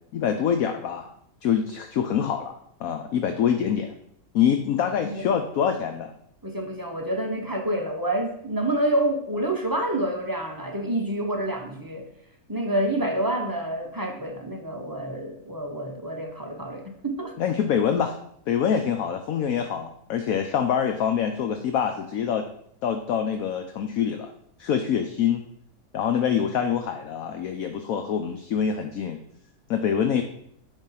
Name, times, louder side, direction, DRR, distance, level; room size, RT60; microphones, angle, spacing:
voice 1, 0.1-1.1 1.4-2.5 2.8-3.9 4.3-6.1 17.4-18.2 18.5-22.4 22.8-24.3 24.6-25.4 25.9-29.2 29.7-30.2, left 8 dB, 65° left, 6 dB, 1.0 m, -25 dB
voice 2, 6.4-12.1 12.5-17.4, right 1 dB, 20° right, 3 dB, 0.5 m, -28 dB
10.5 x 3.6 x 5.7 m, 0.69 s
omnidirectional pair, 1.9 m